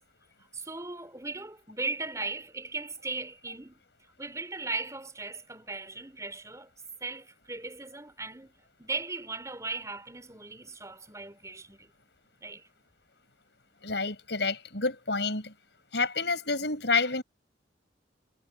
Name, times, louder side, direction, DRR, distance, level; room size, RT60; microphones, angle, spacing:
voice 1, 0.5-3.8 4.2-6.7 7.0-8.5 8.8-11.9 12.4-12.6, right 3 dB, 15° right, 4.3 m, -37 dB
voice 2, 13.8-15.5 15.9-17.2, left 4 dB, 70° left, 7.0 m, -29 dB
head